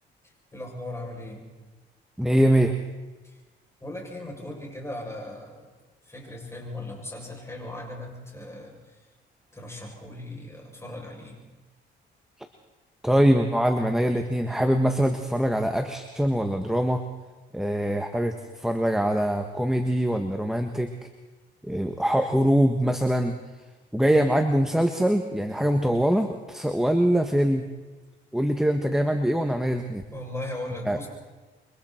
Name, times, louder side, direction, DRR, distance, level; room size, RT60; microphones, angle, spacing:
voice 1, 0.2-1.4 3.2-3.4 3.8-5.7 6.0-9.0 9.5-11.4 30.1-31.1, left 1 dB, 15° left, -1 dB, 7.8 m, -38 dB
voice 2, 2.2-2.7 13.0-17.0 17.5-20.9 21.7-23.3 23.9-27.6 28.3-30.0 30.9-31.0, equal, ahead, 5 dB, 1.5 m, -23 dB
27.5 x 24.5 x 4.5 m, 1.2 s
cardioid pair, 90°, 20 cm